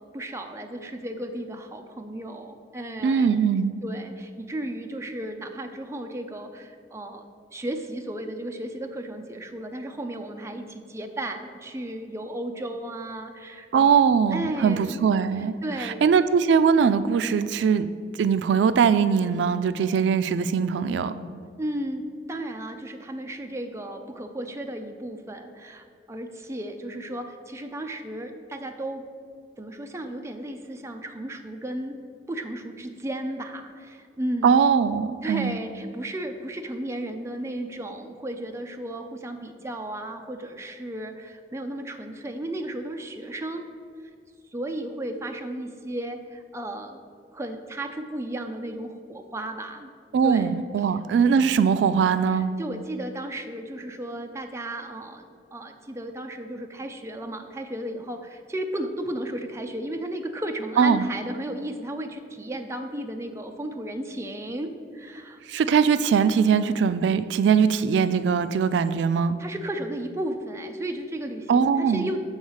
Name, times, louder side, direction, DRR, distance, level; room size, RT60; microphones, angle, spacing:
voice 1, 0.1-3.5 3.8-7.3 7.5-13.9 14.3-15.0 15.6-16.0 21.6-29.0 29.6-32.0 32.3-34.6 35.2-43.7 44.5-47.0 47.3-49.9 50.2-50.9 52.3-65.4 69.4-72.2, right 1 dB, 15° right, 4 dB, 0.5 m, -34 dB
voice 2, 3.0-3.7 13.7-15.5 15.8-17.9 18.2-21.1 34.4-35.6 50.1-52.5 60.8-61.1 65.5-69.4 71.5-72.1, right 6 dB, 85° right, 12 dB, 0.3 m, -21 dB
7.1 x 4.0 x 6.3 m, 2.2 s
head